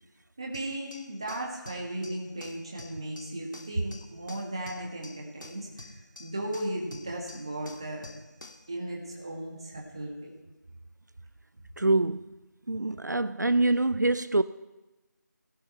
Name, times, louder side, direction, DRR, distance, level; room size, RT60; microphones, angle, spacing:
voice 1, 0.4-8.1 8.7-10.3, right 1 dB, 15° right, 1.7 m, -36 dB
sound 1, 0.5-8.7, left 2 dB, 90° left, 2.5 m, -49 dB
voice 2, 11.8-12.2 12.7-14.4, right 2 dB, 65° right, 0.6 m, -25 dB
19.0 x 16.5 x 4.5 m
figure-of-eight pair, 175°, 10 cm